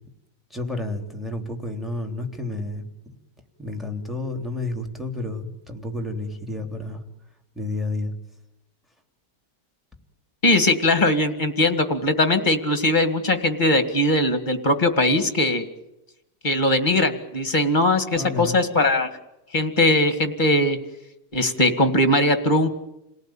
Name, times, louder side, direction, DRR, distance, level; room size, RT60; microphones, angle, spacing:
voice 1, 0.5-3.1 3.6-7.0 7.5-8.1 18.1-18.6, left 2 dB, ahead, 4 dB, 3.3 m, -30 dB
voice 2, 10.4-15.6 16.4-19.1 19.5-20.8 21.3-22.7, left 1 dB, 25° left, 8 dB, 2.1 m, -20 dB
28.5 x 18.0 x 8.9 m, 0.90 s
omnidirectional pair, 1.9 m